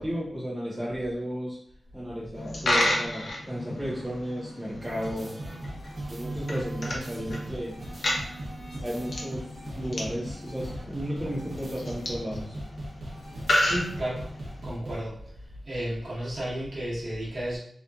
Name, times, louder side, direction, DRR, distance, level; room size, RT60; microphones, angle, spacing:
voice 1, 0.0-1.6 1.9-5.3 6.1-7.8 8.8-9.4 9.7-12.6, equal, 15° right, -7 dB, 1.0 m, -33 dB
Coin (dropping), 2.3-14.6, left 1 dB, 60° left, 0.6 m, -32 dB
sound 1, 4.8-15.0, right 1 dB, 75° right, 0.8 m, -39 dB
voice 2, 13.6-14.2 14.6-15.1 15.7-17.6, right 1 dB, 60° right, -8 dB, 1.1 m, -32 dB
2.9 x 2.3 x 2.4 m, 0.66 s
wide cardioid pair, 135°, 0 cm